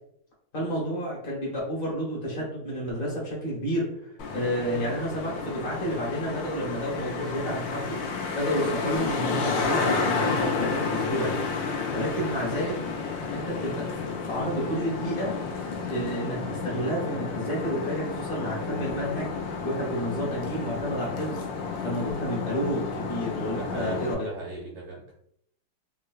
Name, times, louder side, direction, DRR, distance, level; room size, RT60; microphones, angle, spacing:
voice 1, 0.5-3.9 4.3-8.0 8.4-11.5 11.9-12.8 13.3-15.3 15.9-21.4 21.8-24.3, equal, 50° left, -5 dB, 1.2 m, -30 dB
Traffic noise roadway noise, 4.2-24.2, left 4 dB, 75° left, 1.1 m, -31 dB
voice 2, 23.5-25.1, right 2 dB, 80° right, -5 dB, 1.7 m, -39 dB
3.7 x 2.1 x 2.3 m, 0.70 s
omnidirectional pair, 2.3 m